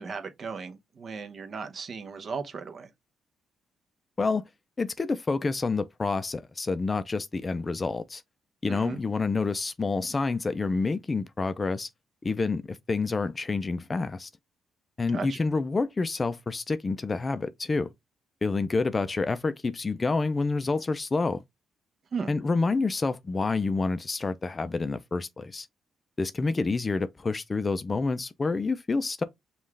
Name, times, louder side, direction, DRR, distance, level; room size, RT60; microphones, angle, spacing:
voice 1, 0.0-2.9 8.7-9.0 15.1-15.4 22.1-22.3, right 5 dB, 45° right, 0.8 m, -36 dB
voice 2, 4.8-8.2 8.6-11.9 12.2-14.3 15.0-17.9 18.4-21.4 22.3-25.7 26.2-29.2, left 3 dB, 30° left, 0.4 m, -28 dB
5.4 x 2.4 x 3.2 m
cardioid pair, 90°, 0 cm